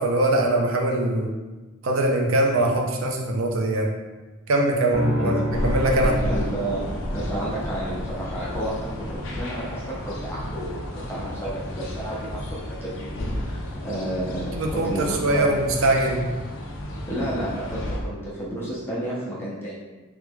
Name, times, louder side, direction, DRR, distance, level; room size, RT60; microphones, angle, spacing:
voice 1, 0.0-1.3 1.8-3.9 4.5-6.2 14.5-16.2, right 1 dB, 75° right, 1 dB, 0.5 m, -22 dB
sound 1, 4.9-7.3, left 1 dB, 40° right, 1.1 m, -32 dB
sound 2, 5.5-18.0, equal, 65° left, 0.5 m, -32 dB
voice 2, 6.2-6.8 7.1-15.5 17.1-19.8, right 1 dB, 10° left, -8 dB, 0.6 m, -31 dB
3.0 x 2.3 x 3.3 m, 1.2 s
head